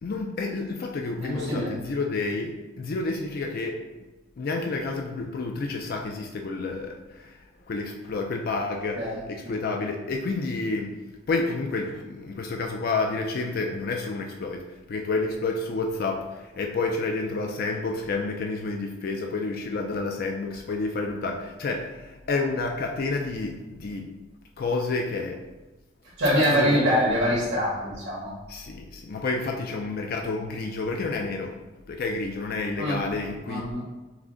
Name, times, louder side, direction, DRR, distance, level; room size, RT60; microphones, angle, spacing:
voice 1, 0.0-3.8 4.4-7.4 7.7-10.9 11.3-24.1 24.6-25.4 26.3-26.8 28.5-31.6 31.9-33.8, left 3 dB, 50° left, 2 dB, 0.4 m, -30 dB
voice 2, 1.2-1.7 8.9-9.8 26.2-28.3 32.8-33.0 33.4-33.8, equal, 70° right, -9 dB, 1.5 m, -25 dB
5.9 x 2.1 x 3.7 m, 1.2 s
head